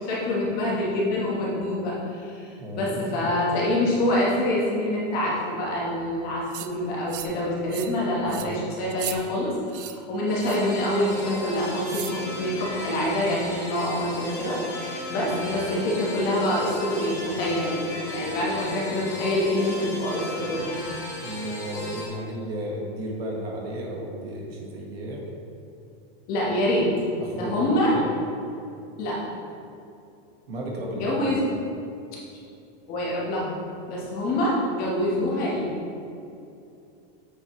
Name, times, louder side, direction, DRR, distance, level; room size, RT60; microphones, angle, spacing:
voice 1, 0.1-17.8 18.1-20.6 26.3-26.9 27.3-28.0 29.0-29.2 30.9-31.5 32.1-32.2 32.9-33.5 33.9-35.7, left 1 dB, 30° left, -5 dB, 1.4 m, -26 dB
voice 2, 2.6-3.4 8.2-8.8 21.2-25.3 27.2-28.1 30.5-31.2, equal, 75° right, -1 dB, 1.7 m, -34 dB
sound 1, 6.5-6.7 7.1-7.4 7.7-8.0 8.3-8.5 8.9-9.2 9.7-10.0 10.4-10.7 11.8-12.2, right 12 dB, 60° right, 0.5 m, -36 dB
sound 2, 10.3-22.1, left 1 dB, 10° left, 1.2 m, -35 dB
7.8 x 6.2 x 3.2 m, 2.6 s
supercardioid pair, 175°, 31 cm